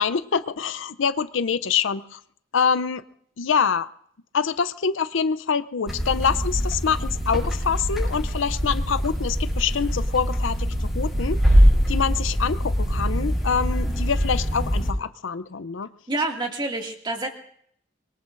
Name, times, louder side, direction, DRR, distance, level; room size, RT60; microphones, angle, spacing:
voice 1, 0.0-2.2 2.5-3.0 3.4-3.9 4.3-11.4 11.9-15.9, left 6 dB, 70° left, 13 dB, 0.6 m, -25 dB
sound 1, 5.9-14.9, equal, ahead, 5.9 m, -23 dB
voice 2, 16.1-17.3, right 2 dB, 25° right, 1 dB, 2.1 m, -27 dB
25.0 x 22.0 x 2.6 m, 0.66 s
head